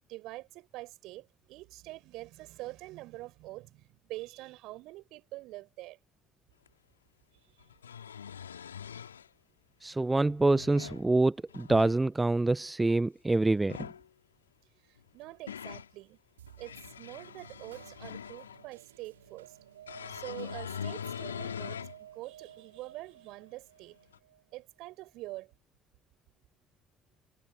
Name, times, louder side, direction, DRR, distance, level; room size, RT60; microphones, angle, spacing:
voice 1, 0.1-6.0 15.1-16.2 16.6-19.5 20.1-21.8 22.1-24.0 24.5-25.5, right 19 dB, 60° right, 6.1 m, -45 dB
sound 1, 6.7-6.8 7.6-9.3 10.3-11.0 11.5-12.0 13.6-14.0 15.0-15.9 16.5-18.7 19.9-22.0 22.5-22.6 24.1-24.2, left 8 dB, 80° left, 3.3 m, -42 dB
voice 2, 9.8-13.9, right 2 dB, 15° right, 1.0 m, -26 dB
sound 2, 16.4-25.1, right 11 dB, 80° right, 6.1 m, -54 dB
figure-of-eight pair, 50°, 0 cm